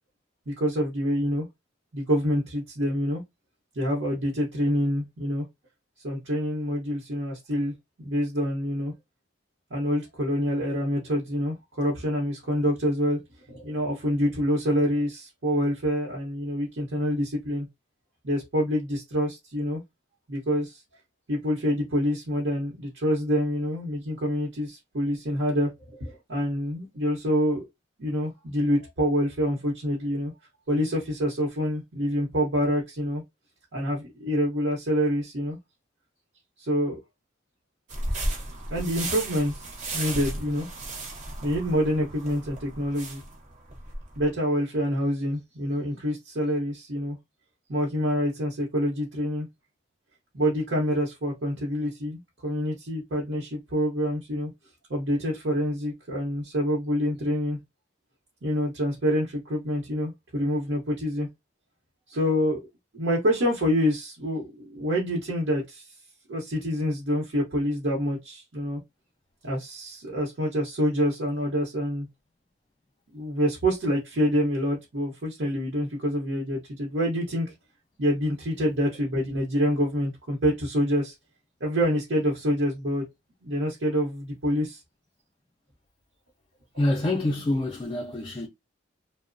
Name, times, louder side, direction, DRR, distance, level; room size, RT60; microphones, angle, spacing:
voice 1, 0.5-1.5 1.9-3.2 3.8-5.4 6.0-8.9 9.7-13.2 13.5-17.7 18.2-19.8 20.3-20.8 21.3-27.7 28.0-30.3 30.7-33.2 33.7-35.6 36.6-37.0 38.7-40.7 41.4-43.2 44.2-47.2 47.7-49.5 50.3-54.5 54.9-57.6 58.4-61.3 62.1-62.6 62.9-65.9 66.3-68.8 69.4-72.1 73.1-77.5 78.0-81.1 81.6-83.0 83.4-84.8, equal, 70° right, 0.8 m, -26 dB
sound 1, 37.9-44.3, right 1 dB, 40° right, 0.7 m, -34 dB
voice 2, 86.8-88.5, left 1 dB, 25° left, 0.4 m, -26 dB
2.9 x 2.0 x 2.5 m
head